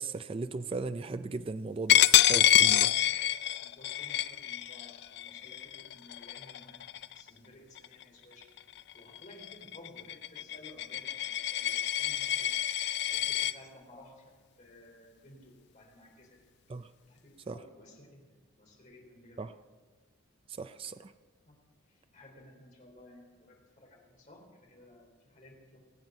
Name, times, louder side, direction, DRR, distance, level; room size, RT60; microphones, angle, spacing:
voice 1, 0.0-2.9 16.7-16.9 17.5-17.6 19.4-19.5 20.5-21.1, right 3 dB, 25° right, 12 dB, 0.3 m, -37 dB
Coin (dropping), 1.9-7.3 7.8-8.0 8.4-13.5, left 12 dB, 50° left, 0.3 m, -27 dB
voice 2, 2.9-3.2 3.6-6.9 7.1-8.4 8.9-12.6 13.1-14.3 14.6-16.4 17.0-18.2 18.6-19.4 21.5-21.6 21.9-25.8, left 1 dB, 35° left, 0 dB, 3.4 m, -55 dB
22.5 x 7.9 x 5.3 m, 1.4 s
head